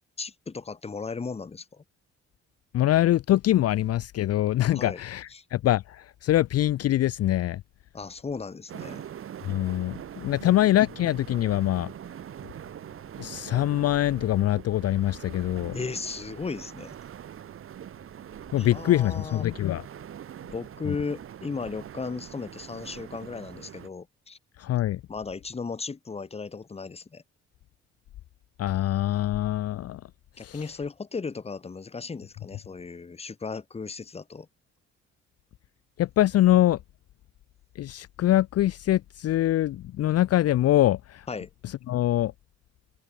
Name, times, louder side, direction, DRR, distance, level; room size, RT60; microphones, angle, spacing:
voice 1, 0.2-1.8 4.7-5.0 5.3-5.4 7.9-9.1 10.3-10.5 15.7-16.9 18.6-19.5 20.5-24.4 25.1-27.2 30.4-34.5 41.3-41.5, left 4 dB, 20° left, 0.9 m, -36 dB
voice 2, 2.7-7.6 9.4-11.9 13.2-15.8 18.5-19.8 20.9-21.0 24.6-25.0 28.6-30.0 30.4-30.6 36.0-36.8 37.8-41.3 41.6-42.3, left 14 dB, 55° left, 0.5 m, -24 dB
sound 1, 8.7-23.9, right 9 dB, 45° right, 0.8 m, -43 dB
cardioid pair, 90°, 30 cm